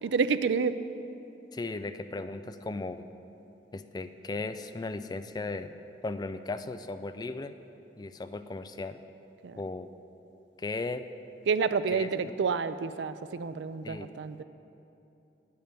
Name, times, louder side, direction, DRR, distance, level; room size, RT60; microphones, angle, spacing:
voice 1, 0.0-0.8 9.4-9.6 11.5-14.4, right 5 dB, 85° right, 13 dB, 0.4 m, -29 dB
voice 2, 1.5-3.1 3.7-5.7 6.0-7.5 8.0-9.0 9.6-9.9 10.6-11.0 11.9-12.3 13.8-14.1, left 3 dB, 25° left, 10 dB, 0.3 m, -36 dB
8.9 x 8.5 x 5.8 m, 2.8 s
head